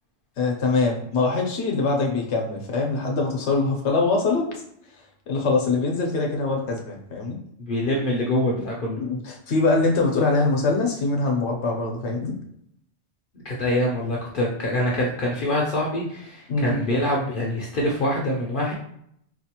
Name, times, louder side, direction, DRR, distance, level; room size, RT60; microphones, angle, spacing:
voice 1, 0.4-4.5 5.3-7.4 9.0-12.4 16.5-16.8, left 3 dB, 80° left, 1 dB, 1.1 m, -23 dB
voice 2, 7.6-9.0 13.4-18.7, left 1 dB, 55° left, -3 dB, 0.7 m, -25 dB
4.6 x 2.4 x 2.9 m, 0.73 s
omnidirectional pair, 1.2 m